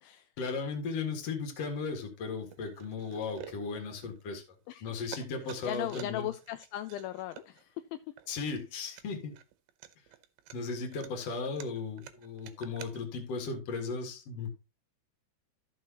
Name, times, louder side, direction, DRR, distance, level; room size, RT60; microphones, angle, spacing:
voice 1, 0.4-4.4 4.8-6.3 8.3-9.4 10.5-14.5, left 4 dB, 50° left, 2.3 m, -36 dB
sound 1, 1.9-2.1 2.5-4.6 4.9-13.0, right 12 dB, 75° right, 2.2 m, -50 dB
voice 2, 5.6-8.0, left 13 dB, 85° left, 2.1 m, -38 dB
13.5 x 6.1 x 2.9 m
omnidirectional pair, 4.7 m